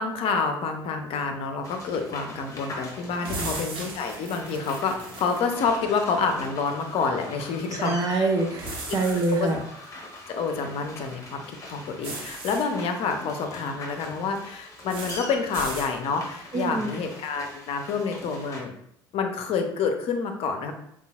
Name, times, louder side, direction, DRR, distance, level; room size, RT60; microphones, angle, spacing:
voice 1, 0.0-8.3 9.4-9.5 10.3-11.4 11.7-18.7 19.1-20.7, left 5 dB, 50° left, 5 dB, 0.6 m, -28 dB
sound 1, 1.6-18.6, left 2 dB, 25° left, 1.2 m, -42 dB
sound 2, 3.2-5.4 8.6-9.5 12.0-12.6 14.9-15.2 15.5-15.9, right 2 dB, 45° right, 1.2 m, -36 dB
voice 2, 7.8-9.6 16.5-16.9, right 3 dB, 30° right, 2 dB, 0.5 m, -25 dB
5.4 x 2.4 x 2.4 m, 0.72 s
figure-of-eight pair, 60°, 13 cm